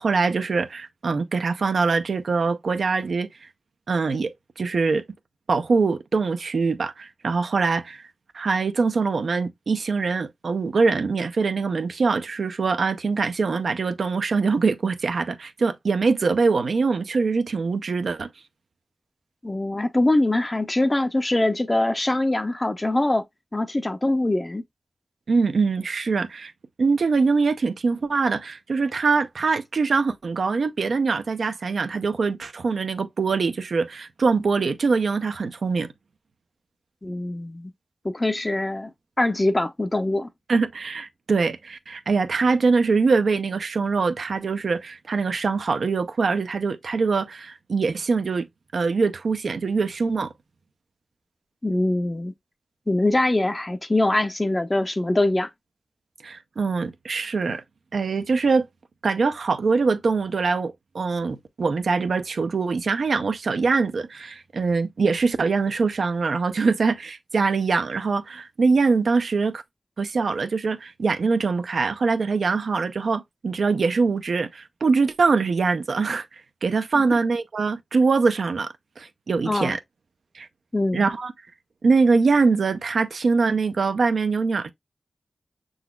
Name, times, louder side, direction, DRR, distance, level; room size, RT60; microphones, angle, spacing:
voice 1, 0.0-3.3 3.9-5.0 5.5-8.1 8.3-18.3 25.3-26.5 26.8-35.9 40.5-48.5 48.7-50.3 56.2-57.6 57.9-58.7 59.0-69.6 70.0-76.3 76.6-79.8 80.3-80.5 80.9-81.3 81.8-84.7, right 4 dB, 80° right, 0.4 m, -23 dB
voice 2, 19.4-23.2 23.5-24.6 37.0-37.7 38.0-38.9 39.2-40.3 51.6-52.3 52.9-55.5 76.9-77.0 79.5-79.8 80.7-81.1, left 2 dB, 25° left, 0.5 m, -23 dB
5.8 x 3.9 x 2.2 m
wide cardioid pair, 65°, 0 cm